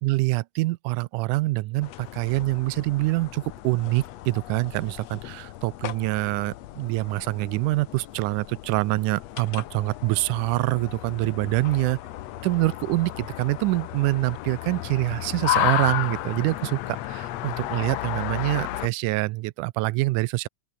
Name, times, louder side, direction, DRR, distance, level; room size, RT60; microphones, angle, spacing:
voice 1, 0.0-12.0 12.4-20.5, right 20 dB, 85° right, 2.1 m, -25 dB
sound 1, 1.8-18.9, left 14 dB, 70° left, 1.9 m, -33 dB
open air
omnidirectional pair, 3.6 m